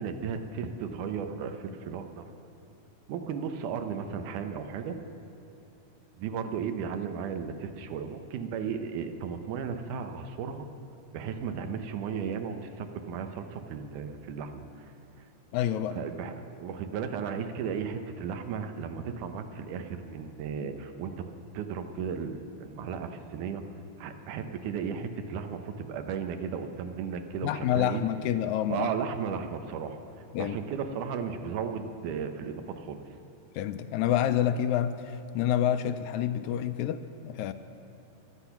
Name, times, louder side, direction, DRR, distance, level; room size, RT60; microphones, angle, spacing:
voice 1, 0.0-2.2 3.1-5.0 6.2-10.7 11.1-14.9 15.9-21.1 21.5-23.6 24.0-28.0 28.7-30.0 30.4-33.0, right 6 dB, 85° right, 7 dB, 2.4 m, -35 dB
voice 2, 15.5-16.0 27.4-28.9 30.3-30.6 33.5-37.5, left 10 dB, 80° left, 10 dB, 1.9 m, -28 dB
24.0 x 8.2 x 5.8 m, 2.9 s
omnidirectional pair, 3.5 m